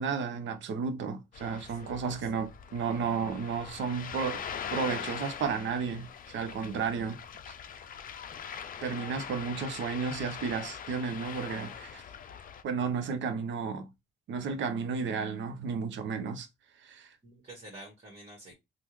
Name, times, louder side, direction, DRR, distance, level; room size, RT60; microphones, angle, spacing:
voice 1, 0.0-4.4 4.7-7.2 7.5-7.6 8.4-12.0 12.6-13.9 14.3-16.5 16.8-17.1, right 5 dB, 70° right, 0.8 m, -33 dB
Ocean, 1.3-12.6, left 8 dB, 45° left, 0.4 m, -42 dB
voice 2, 1.7-2.0 17.2-18.5, right 1 dB, 35° right, 1.6 m, -49 dB
3.4 x 2.4 x 3.0 m
cardioid pair, 90°, 20 cm